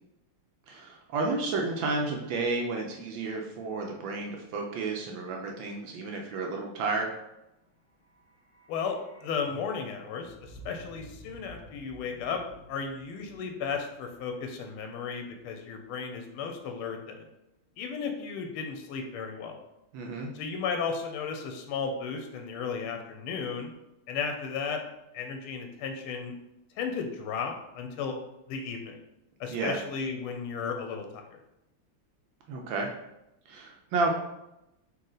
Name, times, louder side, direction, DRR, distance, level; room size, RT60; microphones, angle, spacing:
voice 1, 0.7-7.1 19.9-20.3 29.5-29.8 32.5-32.9 33.5-34.1, right 3 dB, 75° right, 1 dB, 1.3 m, -31 dB
sound 1, 7.8-15.9 16.2-16.3, right 1 dB, 50° left, 1.3 m, -52 dB
voice 2, 8.7-12.4 12.7-17.3 17.8-19.6 20.3-23.7 24.1-24.8 25.1-26.4 26.8-28.2 28.5-29.0 29.4-31.4, left 5 dB, 90° left, 4 dB, 1.5 m, -34 dB
4.2 x 2.9 x 3.8 m, 0.89 s
omnidirectional pair, 2.3 m